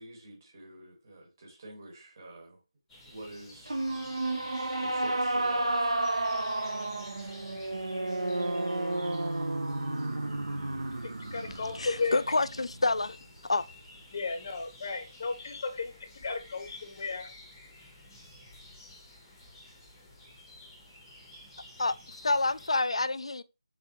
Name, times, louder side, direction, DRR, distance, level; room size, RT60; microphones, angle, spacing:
voice 1, 0.0-2.6 3.0-3.8 4.8-5.9, right 1 dB, 30° right, 1.3 m, -47 dB
sound 1, 2.9-22.7, left 1 dB, 10° left, 0.8 m, -52 dB
sound 2, 3.7-13.0, right 2 dB, 80° right, 0.8 m, -32 dB
voice 2, 11.0-12.2 14.1-17.3, left 4 dB, 40° left, 0.6 m, -34 dB
voice 3, 11.8-13.2 13.5-13.7 21.8-22.0 22.2-23.4, left 3 dB, 80° left, 0.3 m, -27 dB
3.6 x 3.5 x 2.8 m
figure-of-eight pair, 165°, 3 cm